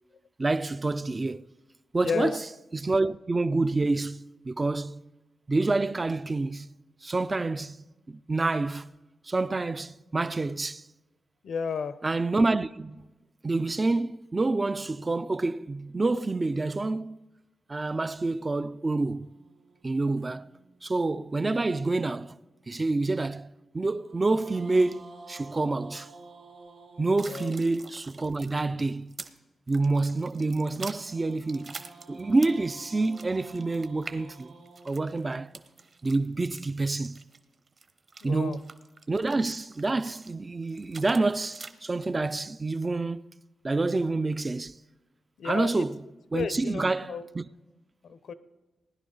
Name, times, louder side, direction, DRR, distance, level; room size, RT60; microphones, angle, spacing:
voice 1, 0.4-1.5 1.9-2.4 2.7-5.0 5.5-6.7 7.0-8.9 9.3-10.8 12.0-13.1 13.4-17.2 17.7-19.3 19.8-20.5 20.8-22.4 22.7-26.1 27.0-29.1 29.7-31.8 32.1-34.5 34.8-35.5 36.0-37.2 38.2-38.7 39.1-43.3 43.6-44.8 45.4-46.0 46.3-47.5, right 3 dB, 25° right, 0.3 m, -28 dB
voice 2, 2.0-2.4 11.4-12.0 27.3-27.5 38.2-38.6 45.4-45.9 46.3-47.2 48.0-48.3, left 6 dB, 75° left, 0.7 m, -32 dB
sound 1, 19.2-21.6 23.8-28.0 30.1-36.3, right 3 dB, 85° right, 3.0 m, -52 dB
sound 2, 27.2-29.4 29.7-32.7 33.0-40.3 40.7-41.7, right 4 dB, 45° right, 0.9 m, -46 dB
19.5 x 10.5 x 3.9 m
wide cardioid pair, 110°, 0 cm